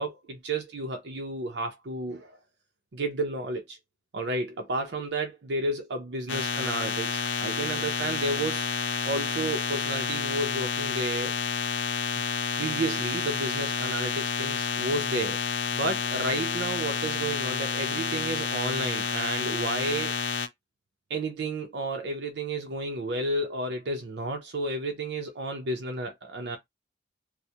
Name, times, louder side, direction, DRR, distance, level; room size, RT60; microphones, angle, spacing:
voice 1, 0.0-2.4 2.9-3.8 4.1-8.7 9.0-11.4 12.2-12.3 12.6-15.4 15.7-20.1 21.1-26.6, right 2 dB, 65° right, 0.5 m, -32 dB
sound 1, 6.3-20.5, left 7 dB, 80° left, 0.4 m, -30 dB
2.3 x 2.0 x 2.7 m
head